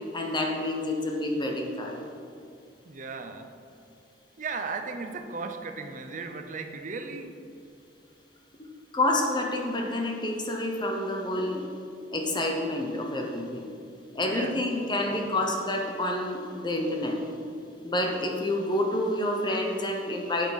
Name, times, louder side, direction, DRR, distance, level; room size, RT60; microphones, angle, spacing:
voice 1, 0.1-2.0 8.6-8.7 8.9-11.6 12.1-13.7 14.1-17.2 17.8-20.5, left 1 dB, 25° left, 2 dB, 0.9 m, -28 dB
voice 2, 2.8-3.5 4.4-7.3 14.2-14.6 15.1-15.3, right 4 dB, 45° right, 6 dB, 0.6 m, -36 dB
8.6 x 8.2 x 4.1 m, 2.6 s
head